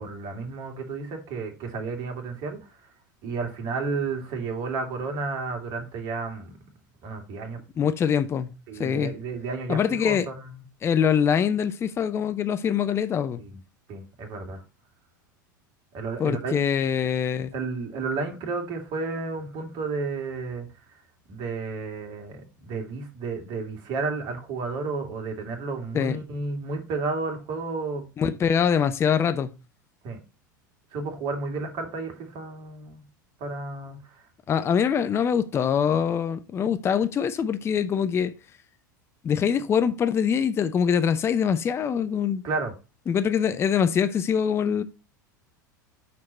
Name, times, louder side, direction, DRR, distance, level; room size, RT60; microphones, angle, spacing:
voice 1, 0.0-2.6 3.2-6.6 7.0-7.6 8.7-10.5 13.4-13.6 13.9-14.6 15.9-16.5 17.5-20.7 21.3-28.1 30.0-30.2 30.9-33.0 33.4-34.0 42.4-42.7, right 4 dB, 45° right, 2.2 m, -32 dB
voice 2, 7.8-8.5 8.8-9.1 9.7-10.3 10.8-13.4 16.2-17.5 25.9-26.2 28.2-29.5 34.5-38.3 39.2-42.4 43.1-44.8, left 7 dB, 25° left, 0.5 m, -24 dB
5.9 x 4.6 x 4.2 m
figure-of-eight pair, 80°, 11 cm